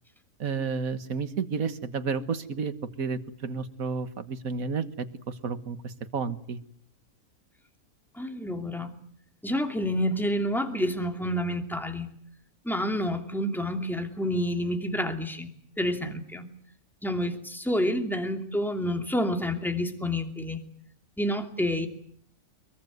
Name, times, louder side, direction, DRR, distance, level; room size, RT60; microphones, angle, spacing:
voice 1, 0.4-6.6, right 5 dB, 70° right, 11 dB, 1.9 m, -31 dB
voice 2, 8.2-8.9 9.4-12.1 12.6-15.5 15.8-16.5 17.0-20.6 21.2-21.9, equal, ahead, 6 dB, 2.7 m, -28 dB
24.0 x 23.0 x 9.5 m, 0.62 s
omnidirectional pair, 1.6 m